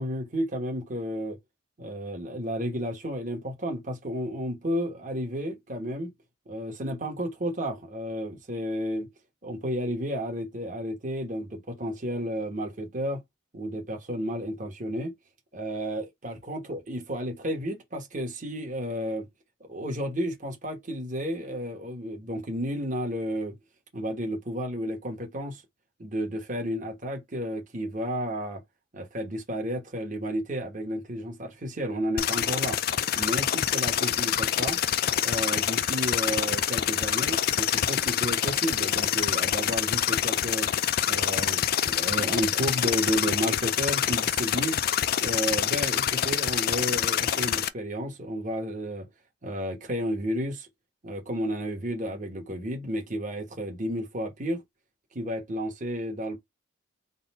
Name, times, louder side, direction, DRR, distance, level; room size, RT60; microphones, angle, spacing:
voice 1, 0.0-1.4 1.8-6.1 6.5-9.1 9.4-13.2 13.5-15.1 15.5-19.3 19.6-23.6 23.9-25.6 26.0-28.6 28.9-32.8 33.1-34.8 35.2-40.7 41.1-44.8 45.2-49.1 49.4-50.7 51.0-54.6 55.1-56.4, equal, 40° right, 1.1 m, -32 dB
sound 1, 32.2-47.7, left 10 dB, 50° left, 0.3 m, -26 dB
4.0 x 2.3 x 4.1 m
head